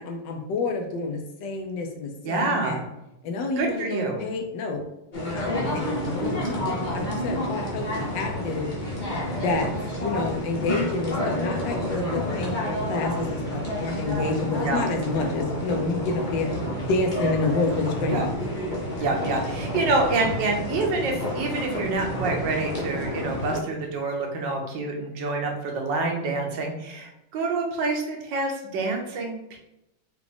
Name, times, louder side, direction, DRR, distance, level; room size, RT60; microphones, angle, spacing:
voice 1, 0.0-2.8 3.2-4.8 5.3-8.7 9.4-9.7 10.0-12.5 12.9-16.5 16.9-18.4, left 3 dB, 80° left, 3 dB, 1.4 m, -28 dB
voice 2, 2.2-2.8 3.6-4.2 14.6-14.9 18.1-18.3 19.0-29.6, right 3 dB, 85° right, 2 dB, 1.5 m, -27 dB
sound 1, 5.1-23.6, left 1 dB, 35° left, 0.9 m, -30 dB
4.8 x 2.5 x 3.4 m, 0.88 s
omnidirectional pair, 1.9 m